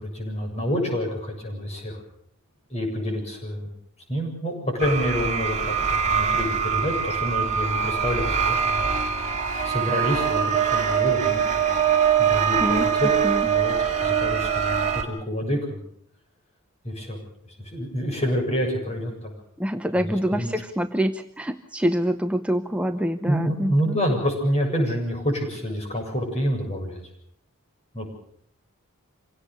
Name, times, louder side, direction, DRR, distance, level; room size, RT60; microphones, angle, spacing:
voice 1, 0.0-2.0 2.7-3.7 4.1-8.9 9.6-11.9 12.2-13.1 13.4-15.8 16.8-19.3 20.0-20.5 23.2-27.0 27.9-28.1, equal, 30° left, 2 dB, 7.5 m, -28 dB
sound 1, 4.8-15.0, right 7 dB, 35° right, 2.5 m, -23 dB
voice 2, 19.6-24.0, equal, 5° right, 6 dB, 0.8 m, -26 dB
26.5 x 17.5 x 6.9 m, 0.66 s
head